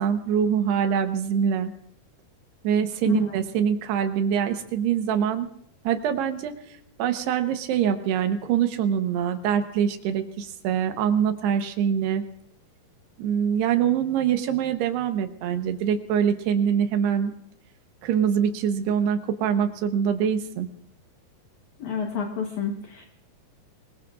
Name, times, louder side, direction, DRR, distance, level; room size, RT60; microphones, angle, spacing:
voice 1, 0.0-1.7 2.6-5.5 5.8-6.5 7.0-12.2 13.2-17.3 18.0-20.7, right 8 dB, 85° right, 7 dB, 3.2 m, -24 dB
voice 2, 21.8-23.0, left 6 dB, 60° left, 3 dB, 2.2 m, -30 dB
24.5 x 21.0 x 2.5 m, 0.72 s
omnidirectional pair, 4.7 m